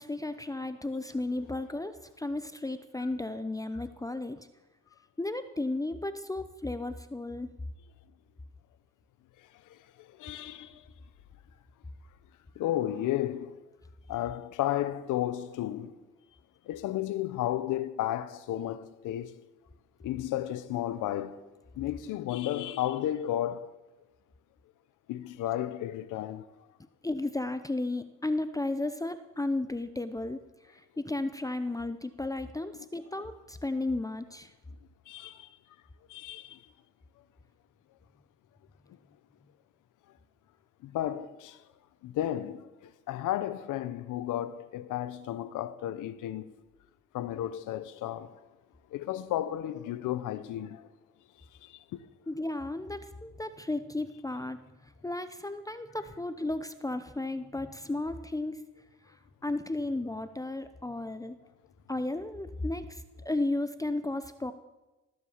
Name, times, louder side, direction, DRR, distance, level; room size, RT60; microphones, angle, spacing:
voice 1, 0.0-4.5 5.2-7.5 27.0-34.5 52.3-58.6 59.1-59.2 59.4-61.4 61.9-64.5, left 2 dB, 10° left, 0.7 m, -34 dB
voice 2, 9.7-10.9 12.6-13.5 14.1-16.0 16.6-19.4 20.0-21.4 21.7-23.8 25.1-26.5 35.1-35.5 36.1-36.6 40.8-41.6 42.0-46.5 47.1-48.4 48.9-50.9 51.6-52.0, left 12 dB, 85° left, 0.9 m, -33 dB
19.0 x 8.2 x 7.2 m
cardioid pair, 90°, 30 cm